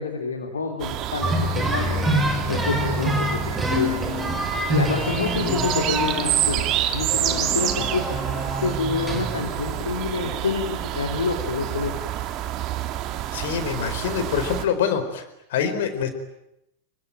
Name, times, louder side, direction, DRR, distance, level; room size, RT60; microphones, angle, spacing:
voice 1, 0.0-2.0 2.5-3.9 4.7-8.2 8.6-12.1, left 4 dB, 70° left, 2 dB, 3.4 m, -28 dB
sound 1, 0.8-14.6, right 12 dB, 35° right, 2.5 m, -28 dB
sound 2, 1.2-9.8, equal, 10° right, 5.4 m, -27 dB
voice 2, 5.4-5.8 13.3-16.1, left 7 dB, 55° left, 8 dB, 4.5 m, -26 dB
26.5 x 24.0 x 9.2 m, 0.86 s
figure-of-eight pair, 90°, 0 cm